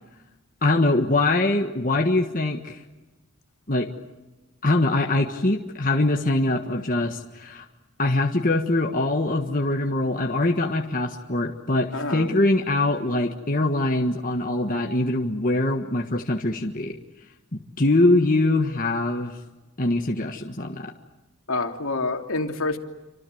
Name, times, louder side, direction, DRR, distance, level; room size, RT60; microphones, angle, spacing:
voice 1, 0.6-2.8 3.7-3.9 4.6-7.7 8.0-17.0 17.8-19.4 19.8-20.9, left 2 dB, 40° left, 2 dB, 1.6 m, -23 dB
voice 2, 11.9-12.3 21.5-22.8, left 3 dB, 70° left, 4 dB, 2.9 m, -27 dB
28.5 x 26.0 x 7.9 m, 1.1 s
head